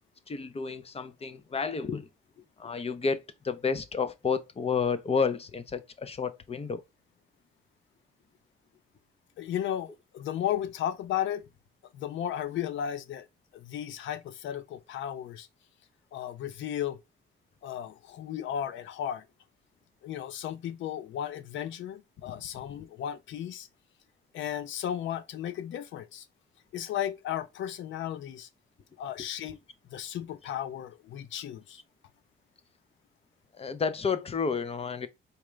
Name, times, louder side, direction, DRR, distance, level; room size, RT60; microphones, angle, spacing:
voice 1, 0.3-2.1 2.6-6.8 29.2-29.3 33.6-35.1, left 5 dB, 30° left, 0.6 m, -31 dB
voice 2, 9.4-11.5 11.9-13.3 13.5-15.5 16.1-17.0 17.6-19.3 20.0-23.7 24.3-26.3 26.7-28.5 29.0-29.6 29.9-31.8, left 10 dB, 75° left, 0.6 m, -34 dB
4.3 x 2.5 x 3.2 m
cardioid pair, 90°, 20 cm